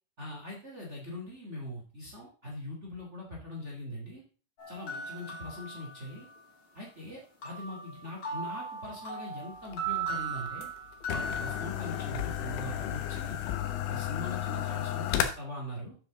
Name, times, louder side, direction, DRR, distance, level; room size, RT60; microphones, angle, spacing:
voice 1, 0.2-4.2 4.7-6.3 6.7-10.7 11.1-13.4 13.7-15.9, left 1 dB, 55° right, -1 dB, 0.7 m, -41 dB
sound 1, 4.6-6.4 7.4-11.7, right 4 dB, 35° left, 2.5 m, -38 dB
sound 2, 9.7-15.2, left 12 dB, 75° left, 3.3 m, -33 dB
9.7 x 7.5 x 3.9 m, 0.38 s
omnidirectional pair, 5.8 m